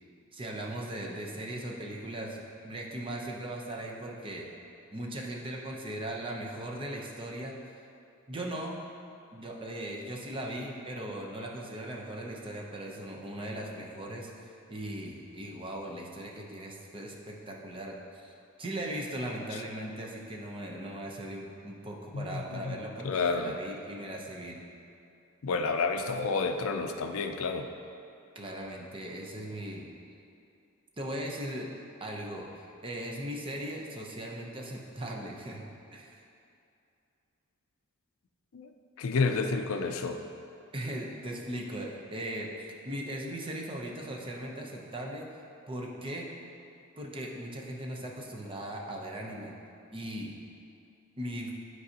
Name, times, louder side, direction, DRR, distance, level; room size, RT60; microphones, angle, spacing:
voice 1, 0.3-4.5 4.9-7.5 8.3-8.7 9.3-24.6 28.3-29.9 31.0-31.7 32.0-35.6 35.9-36.2 40.7-45.3 45.7-46.3 47.0-49.5 49.9-50.3 51.2-51.5, right 1 dB, 25° right, -1 dB, 0.7 m, -38 dB
voice 2, 22.1-22.8 23.0-23.6 25.4-27.7 38.5-38.7 39.0-40.2, left 4 dB, 65° left, 6 dB, 0.4 m, -30 dB
10.5 x 4.7 x 2.8 m, 2.6 s
head